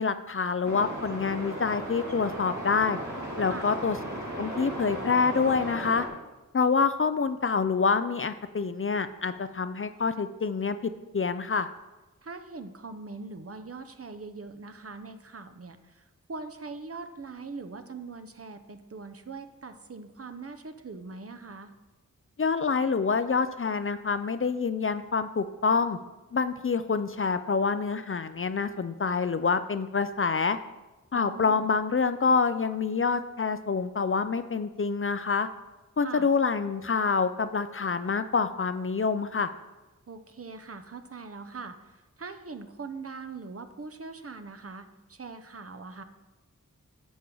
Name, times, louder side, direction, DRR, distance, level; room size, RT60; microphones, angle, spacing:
voice 1, 0.0-3.0 3.4-4.0 4.4-6.0 6.5-11.7 22.4-26.0 26.3-30.6 31.1-35.5 36.0-39.5, left 5 dB, 40° left, 11 dB, 0.4 m, -27 dB
sound 1, 0.6-6.1, equal, 65° right, 2.3 m, -36 dB
voice 2, 12.2-21.7 31.1-31.6 36.0-36.3 40.1-46.0, right 4 dB, 45° right, 7 dB, 0.7 m, -42 dB
10.0 x 7.2 x 3.9 m, 1.1 s
wide cardioid pair, 70°, 32 cm